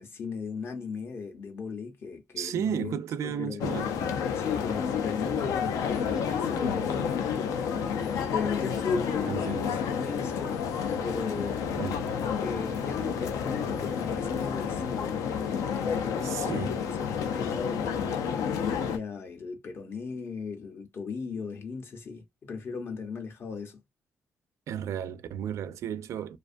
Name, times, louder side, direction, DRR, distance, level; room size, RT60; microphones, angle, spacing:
voice 1, 0.0-2.9 3.2-3.7 4.3-10.7 11.0-11.6 12.4-23.8, left 5 dB, 45° left, 0.7 m, -36 dB
voice 2, 2.4-3.9 9.3-9.8 11.8-12.2 16.2-16.7 24.7-26.4, right 9 dB, 65° right, 0.4 m, -34 dB
sound 1, 3.6-19.0, left 7 dB, 90° left, 0.4 m, -30 dB
2.4 x 2.2 x 2.5 m
cardioid pair, 125°, 6 cm